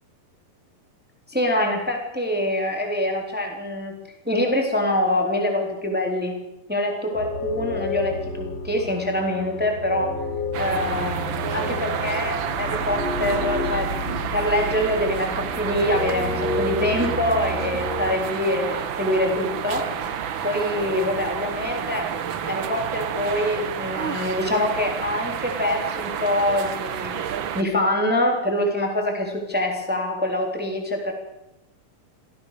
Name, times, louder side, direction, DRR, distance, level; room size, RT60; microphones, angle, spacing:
voice 1, 1.3-3.9 4.2-6.4 6.7-10.1 10.6-20.2 20.4-22.1 22.4-27.2 27.5-31.1, left 1 dB, 5° right, 3 dB, 3.4 m, -25 dB
sound 1, 7.1-18.1, left 2 dB, 50° left, 3.2 m, -30 dB
sound 2, 10.5-27.6, right 8 dB, 75° right, 1.1 m, -30 dB
26.0 x 17.0 x 6.8 m, 0.88 s
omnidirectional pair, 4.0 m